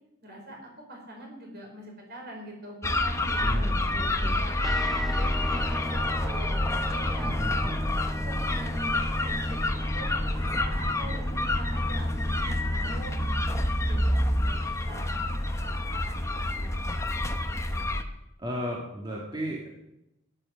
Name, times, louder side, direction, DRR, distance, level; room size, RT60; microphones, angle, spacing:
voice 1, 0.2-0.6 0.9-4.7 5.1-7.4 8.3-17.6, right 1 dB, 50° right, 1 dB, 5.1 m, -44 dB
sound 1, 2.8-18.0, left 1 dB, 15° left, 0.9 m, -28 dB
voice 2, 3.4-4.4 7.2-7.8 18.4-19.7, equal, 20° right, -3 dB, 2.2 m, -35 dB
sound 2, 4.6-15.8, equal, ahead, 0.4 m, -39 dB
13.0 x 11.0 x 6.5 m, 0.87 s
head